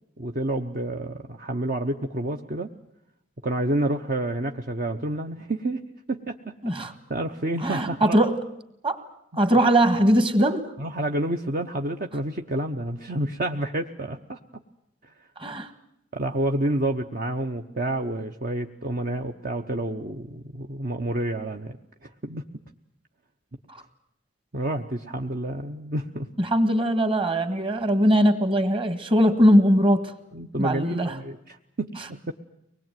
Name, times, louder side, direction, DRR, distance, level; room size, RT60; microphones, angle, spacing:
voice 1, 0.2-2.7 3.4-5.8 6.1-8.2 10.8-14.6 15.0-15.1 16.1-21.8 22.0-22.4 24.5-26.3 30.3-32.3, right 1 dB, 50° right, 4 dB, 1.0 m, -29 dB
voice 2, 7.6-8.4 8.8-9.0 9.4-10.7 15.4-15.7 26.4-30.1 30.6-31.1, equal, 30° right, 10 dB, 1.7 m, -20 dB
24.5 x 20.0 x 9.2 m, 0.79 s
head